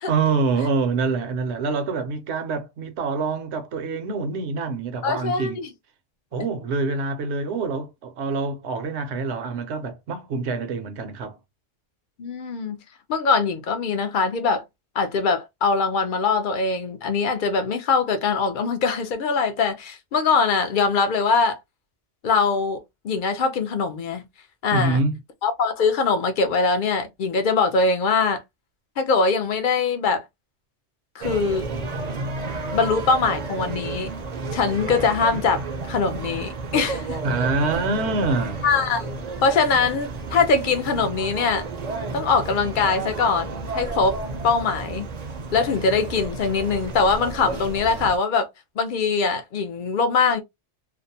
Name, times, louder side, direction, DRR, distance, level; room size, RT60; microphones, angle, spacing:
voice 1, 0.1-5.6 6.3-11.4 24.7-25.2 37.2-38.6, right 4 dB, 70° right, 0.9 m, -25 dB
voice 2, 5.0-5.7 12.2-12.8 13.1-14.6 14.9-21.6 22.2-24.3 24.6-25.0 25.4-28.4 29.0-30.2 31.1-31.7 32.7-34.1 34.5-37.2 38.6-41.7 42.1-44.2 44.4-45.1 45.5-48.5 48.8-50.4, left 4 dB, 60° left, 0.6 m, -22 dB
sound 1, 31.2-48.2, right 3 dB, 45° right, 0.6 m, -32 dB
2.5 x 2.0 x 2.7 m
omnidirectional pair, 1.2 m